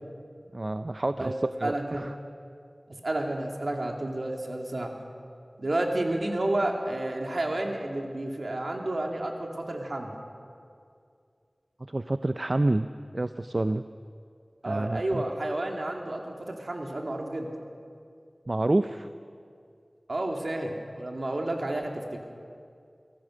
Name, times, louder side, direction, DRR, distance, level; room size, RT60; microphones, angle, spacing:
voice 1, 0.5-1.3 1.6-2.1 11.8-12.9 13.1-13.8 14.7-15.2 18.5-19.1, right 2 dB, 50° right, 10 dB, 0.5 m, -28 dB
voice 2, 1.6-2.0 3.0-4.9 5.6-10.1 14.6-17.5 20.1-22.2, right 1 dB, 70° right, 2 dB, 2.5 m, -31 dB
25.0 x 17.5 x 6.4 m, 2.4 s
wide cardioid pair, 50°, 0 cm